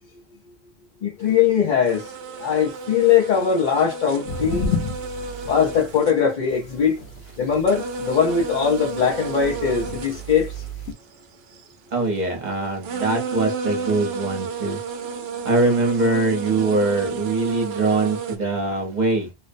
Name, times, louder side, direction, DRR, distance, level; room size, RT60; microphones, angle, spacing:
voice 1, 1.0-2.1 2.4-4.7 5.5-7.0 7.4-10.5, left 7 dB, 50° left, 0.8 m, -20 dB
sound 1, 1.3-1.5 1.9-6.9 7.3-11.7 12.5-12.6 12.8-18.4, right 4 dB, 75° right, 0.8 m, -32 dB
sound 2, 4.3-6.0 6.5-10.9, left 3 dB, 80° left, 1.0 m, -32 dB
voice 2, 11.9-14.8 15.4-19.3, right 3 dB, 45° right, 1.0 m, -22 dB
2.5 x 2.1 x 2.5 m
omnidirectional pair, 1.1 m